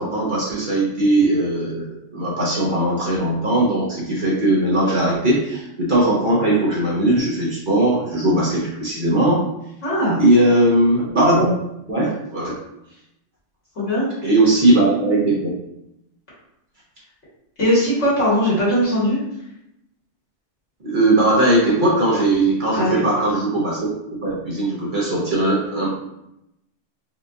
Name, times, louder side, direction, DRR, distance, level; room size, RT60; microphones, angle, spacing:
voice 1, 0.0-1.9 2.1-9.4 10.2-11.6 11.9-12.6 14.2-15.5 20.8-25.9, right 1 dB, 45° right, -6 dB, 0.8 m, -19 dB
voice 2, 9.8-10.2 13.8-14.1 17.6-19.2 22.7-23.0, equal, 65° left, -9 dB, 2.0 m, -19 dB
4.4 x 2.4 x 2.6 m, 0.84 s
omnidirectional pair, 1.3 m